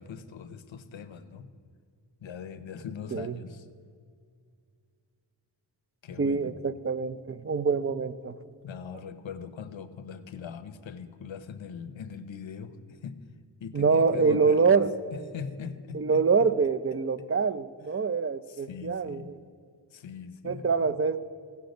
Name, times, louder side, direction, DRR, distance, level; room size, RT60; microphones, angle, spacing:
voice 1, 0.0-1.5 2.2-3.7 6.0-6.6 8.6-13.2 13.6-14.8 15.1-16.2 18.5-19.3 19.9-20.9, left 6 dB, 75° left, 11 dB, 0.8 m, -41 dB
voice 2, 6.2-8.4 13.7-14.9 15.9-19.3 20.4-21.2, right 5 dB, 30° right, 14 dB, 0.5 m, -25 dB
16.5 x 5.7 x 5.2 m, 2.2 s
cardioid pair, 50°, 47 cm